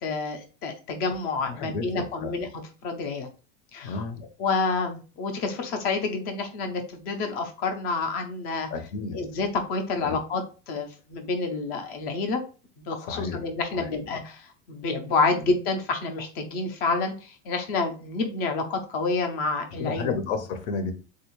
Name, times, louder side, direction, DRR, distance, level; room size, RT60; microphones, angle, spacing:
voice 1, 0.0-2.5 2.8-3.3 3.7-4.0 4.4-8.7 9.1-12.4 12.9-20.1, left 4 dB, 30° left, 0.4 m, -28 dB
voice 2, 1.5-2.3 3.8-4.2 8.7-9.2 10.0-10.2 13.0-13.5 13.7-13.9 15.3-15.5 19.8-20.9, left 4 dB, 80° left, 0.8 m, -32 dB
3.5 x 2.4 x 2.9 m
supercardioid pair, 175°, 35 cm